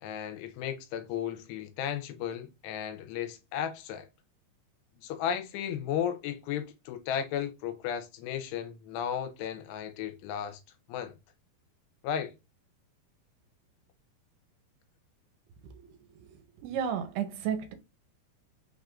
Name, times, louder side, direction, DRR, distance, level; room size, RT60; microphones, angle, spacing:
voice 1, 0.0-4.1 5.0-10.6 10.9-11.1 12.0-12.3, left 9 dB, 85° left, 2.7 m, -34 dB
voice 2, 16.2-17.7, right 8 dB, 85° right, 2.7 m, -33 dB
6.0 x 3.6 x 2.5 m
omnidirectional pair, 4.9 m